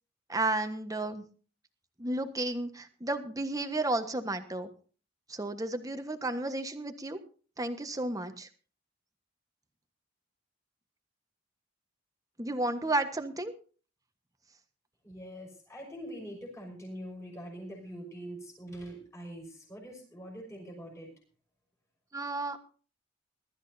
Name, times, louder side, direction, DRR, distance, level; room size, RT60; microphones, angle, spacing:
voice 1, 0.3-1.2 2.0-4.7 5.3-7.2 7.6-8.5 12.4-13.5 22.1-22.6, right 2 dB, 20° right, 8 dB, 1.3 m, -32 dB
voice 2, 15.0-21.1, equal, 15° left, -2 dB, 6.1 m, -44 dB
22.0 x 13.0 x 2.8 m, 0.39 s
head